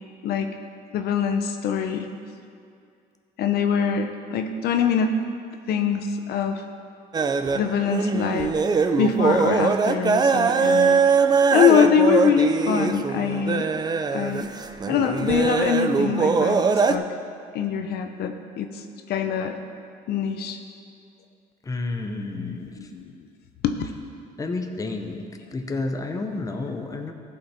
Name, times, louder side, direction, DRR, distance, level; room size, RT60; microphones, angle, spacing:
voice 1, 0.9-2.1 3.4-5.1 5.7-6.6 7.5-8.5 9.0-11.0 11.5-13.7 14.1-14.5 14.9-17.1 17.5-19.6 20.1-20.6 22.3-23.3 23.6-23.8 25.0-25.1, left 7 dB, 70° left, 6 dB, 0.8 m, -23 dB
sound 1, 7.1-16.9, right 5 dB, 25° right, 0.4 m, -22 dB
voice 2, 21.7-22.7 24.4-27.1, left 3 dB, 20° left, 4 dB, 0.9 m, -30 dB
15.0 x 5.7 x 4.3 m, 2.3 s
cardioid pair, 110°, 17 cm